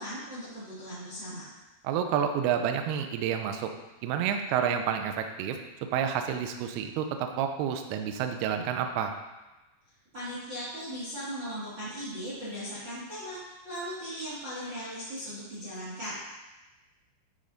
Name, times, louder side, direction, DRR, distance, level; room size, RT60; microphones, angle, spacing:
voice 1, 0.0-1.5 10.1-16.2, equal, 55° right, -10 dB, 1.3 m, -38 dB
voice 2, 1.8-3.7 4.0-5.6 5.9-9.1, right 8 dB, 90° right, 6 dB, 2.2 m, -29 dB
9.2 x 4.2 x 3.9 m, 1.1 s
omnidirectional pair, 5.2 m